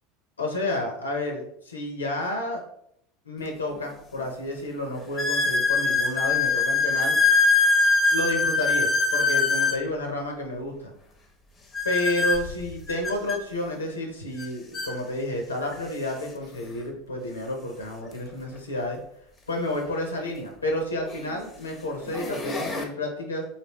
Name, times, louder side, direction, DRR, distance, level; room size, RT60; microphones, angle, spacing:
voice 1, 0.4-2.6 3.3-7.2 8.1-10.9 11.8-19.0 19.5-23.4, left 1 dB, 80° left, 2 dB, 0.5 m, -30 dB
sound 1, 3.5-3.6 4.2-4.3 5.2-9.8 11.7-13.4 14.4-14.5 14.7-14.9 15.7-15.8 18.0-18.1 20.2-20.3 21.0-21.4 21.9-22.8, left 4 dB, 20° left, 0.6 m, -23 dB
3.2 x 2.6 x 2.9 m, 0.72 s
figure-of-eight pair, 75°, 0 cm